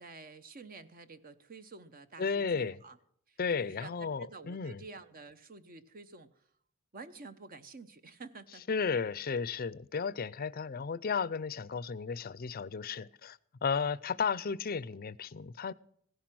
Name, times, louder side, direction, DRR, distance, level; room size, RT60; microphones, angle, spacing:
voice 1, 0.0-3.0 3.3-6.4 6.9-8.6, right 3 dB, 45° right, 0.8 m, -50 dB
voice 2, 2.2-2.8 3.4-4.8 8.7-15.7, left 5 dB, 45° left, 0.5 m, -34 dB
16.5 x 10.5 x 6.1 m
head